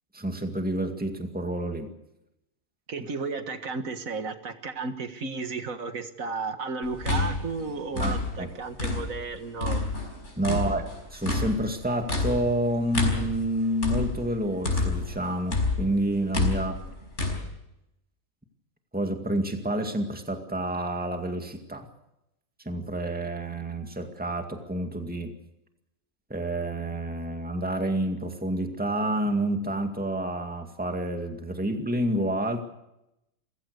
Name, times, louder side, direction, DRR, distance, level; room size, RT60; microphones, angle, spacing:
voice 1, 0.1-1.9 7.9-8.5 10.4-16.8 18.9-21.9 22.7-25.3 26.3-32.6, right 1 dB, 5° right, 4 dB, 2.1 m, -29 dB
voice 2, 2.9-9.8 10.5-10.6, right 4 dB, 80° right, 8 dB, 2.1 m, -33 dB
sound 1, 6.8-9.3 9.6-15.2 15.5-17.4, left 3 dB, 60° left, 5.1 m, -28 dB
28.5 x 16.0 x 6.7 m, 0.86 s
omnidirectional pair, 1.4 m